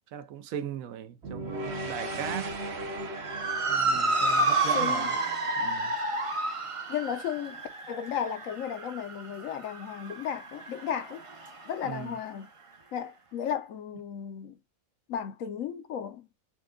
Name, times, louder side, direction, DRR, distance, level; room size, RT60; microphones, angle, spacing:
voice 1, 0.1-2.6 3.7-5.2 5.6-5.9 11.8-12.2, right 9 dB, 80° right, 1.1 m, -39 dB
sound 1, 1.2-5.5, right 1 dB, 55° right, 1.1 m, -37 dB
Motor vehicle (road) / Siren, 3.2-11.7, right 2 dB, 40° right, 0.5 m, -30 dB
voice 2, 4.7-5.1 6.9-11.2 11.7-12.5 12.9-14.6 15.1-16.3, left 8 dB, 75° left, 1.0 m, -34 dB
5.9 x 2.2 x 2.3 m
omnidirectional pair, 1.4 m